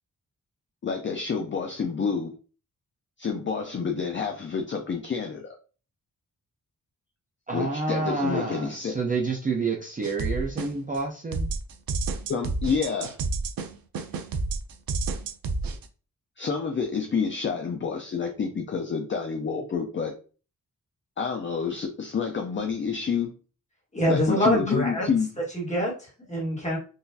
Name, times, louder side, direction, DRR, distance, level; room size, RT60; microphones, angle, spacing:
voice 1, 0.8-2.3 3.2-5.5 7.5-8.9 12.3-13.2 16.4-20.1 21.2-23.3 24.1-25.3, left 6 dB, 35° left, 4 dB, 0.4 m, -28 dB
voice 2, 7.5-11.5, right 4 dB, 25° right, -1 dB, 0.4 m, -29 dB
sound 1, 10.0-11.0 11.3-15.9, right 3 dB, 90° right, 0.5 m, -30 dB
voice 3, 23.9-25.1 25.5-26.8, equal, 20° left, -3 dB, 1.4 m, -25 dB
3.8 x 2.5 x 2.7 m, 0.36 s
wide cardioid pair, 160°, 34 cm